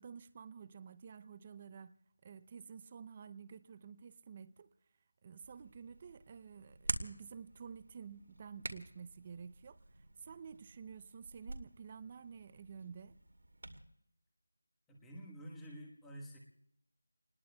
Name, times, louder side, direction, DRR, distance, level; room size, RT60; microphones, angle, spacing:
voice 1, 0.0-1.9 2.2-4.7 5.2-9.8 10.2-13.2, right 6 dB, 20° right, 0.6 m, -51 dB
Hands, 5.4-13.8, right 1 dB, 90° right, 2.3 m, -47 dB
voice 2, 14.9-16.4, equal, 5° left, 1.3 m, -49 dB
29.5 x 20.5 x 2.3 m
figure-of-eight pair, 175°, 0 cm